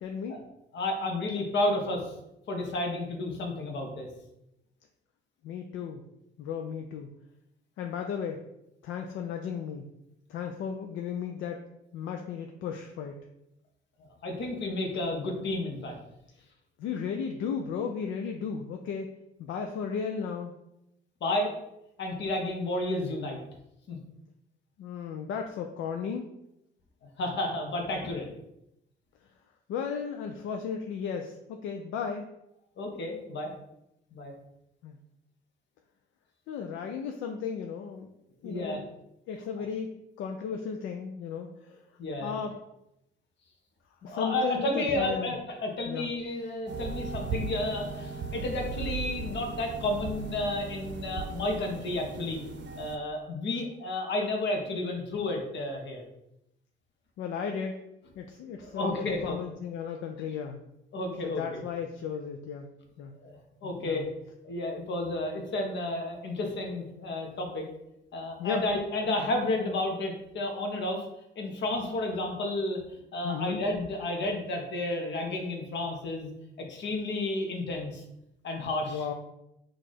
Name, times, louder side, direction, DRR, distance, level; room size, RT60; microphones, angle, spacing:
voice 1, 0.0-0.4 5.4-6.0 6.4-7.1 7.8-8.4 8.8-9.9 10.3-11.6 11.9-13.2 16.8-19.1 19.4-20.5 24.8-26.3 29.7-32.3 34.8-35.0 36.5-38.1 38.4-38.9 39.3-39.9 40.2-41.8 42.2-42.6 44.0-45.3 45.9-46.1 57.2-57.8 58.2-60.6 61.2-62.7 63.0-63.1 63.6-64.0 68.4-68.6 73.2-73.6 78.9-79.1, left 6 dB, 80° left, 4 dB, 0.5 m, -35 dB
voice 2, 0.7-2.1 2.5-4.1 14.2-16.0 21.2-21.5 22.0-23.4 23.9-24.0 27.2-28.3 32.8-33.5 34.1-34.3 38.4-38.8 42.0-42.3 44.0-52.4 52.8-56.0 58.6-59.4 60.9-61.6 63.2-64.1 64.4-67.7 68.1-71.0 71.4-76.3 76.7-78.0 78.4-79.0, left 2 dB, 65° left, 2 dB, 1.0 m, -31 dB
sound 1, 46.7-53.0, right 4 dB, 65° right, 0.7 m, -37 dB
4.6 x 2.5 x 4.1 m, 0.84 s
cardioid pair, 90°, 20 cm